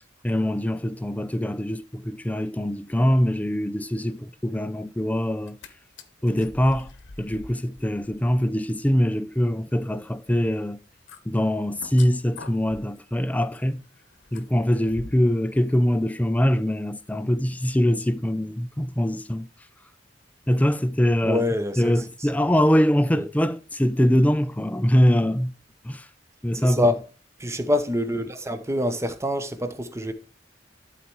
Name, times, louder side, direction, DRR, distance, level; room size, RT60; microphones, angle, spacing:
voice 1, 0.2-5.6 6.2-6.9 7.2-10.8 11.3-13.8 14.3-19.5 20.5-21.4 21.8-25.5 25.8-26.1 26.4-26.9, equal, 10° left, 0.4 m, -23 dB
sound 1, 5.3-5.7 6.0-15.3 15.7-15.8, left 3 dB, 75° left, 1.0 m, -46 dB
voice 2, 21.2-22.0 23.1-23.3 26.5-27.0 27.4-30.1, left 1 dB, 15° right, 0.9 m, -25 dB
12.0 x 4.2 x 4.6 m
head